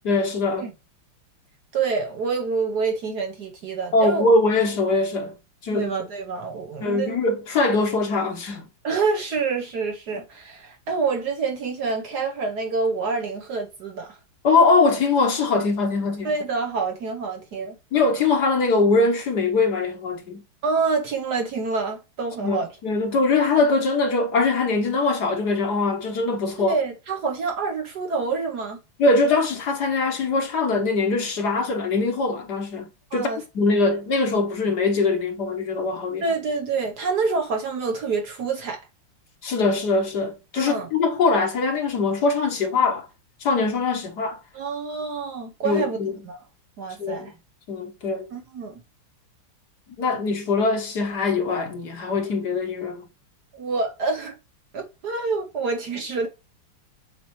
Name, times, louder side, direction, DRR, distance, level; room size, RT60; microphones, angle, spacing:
voice 1, 0.0-0.7 3.9-5.3 5.6-5.9 6.8-8.6 14.4-16.3 17.9-20.4 22.4-26.7 29.0-33.3 33.5-36.3 39.4-43.1 43.4-44.4 45.6-46.1 47.0-47.3 47.7-48.3 50.0-53.0, left 3 dB, 55° left, 1.4 m, -22 dB
voice 2, 1.7-4.3 5.7-7.2 8.8-14.2 16.2-17.8 20.6-22.7 26.6-28.8 33.1-33.4 33.8-33.9 36.2-38.8 40.6-40.9 44.5-46.0 46.2-46.4 46.8-47.3 48.3-48.8 53.5-54.4 54.7-56.3, right 4 dB, 55° right, 1.3 m, -27 dB
7.4 x 4.9 x 3.1 m
omnidirectional pair, 2.4 m